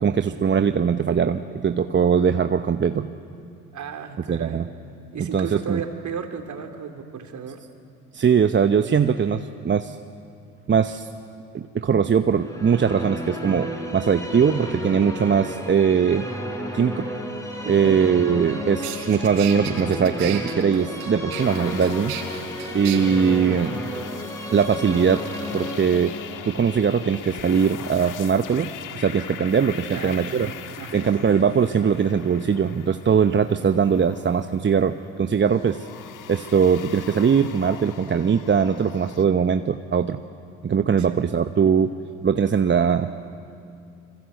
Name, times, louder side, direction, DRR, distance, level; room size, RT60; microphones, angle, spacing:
voice 1, 0.0-3.1 4.3-4.7 5.3-5.8 8.1-10.0 10.7-11.1 11.5-16.3 16.7-17.1 17.7-22.2 22.7-23.8 24.5-26.2 26.4-30.5 30.9-35.9 36.3-40.2 40.6-41.9 42.2-43.2, right 7 dB, 30° right, 8 dB, 1.0 m, -21 dB
voice 2, 3.7-4.6 5.1-7.6 12.0-12.1 17.6-18.0 29.9-31.1 41.0-41.2, right 6 dB, 45° right, 4 dB, 3.5 m, -34 dB
sound 1, 12.3-28.3, left 1 dB, 10° left, 6.4 m, -33 dB
sound 2, 18.4-18.5 18.8-23.0, right 10 dB, 70° right, 4.0 m, -35 dB
sound 3, 21.4-39.2, left 9 dB, 50° left, 1.6 m, -41 dB
26.5 x 25.5 x 7.9 m, 2.5 s
hypercardioid pair, 60°, 39 cm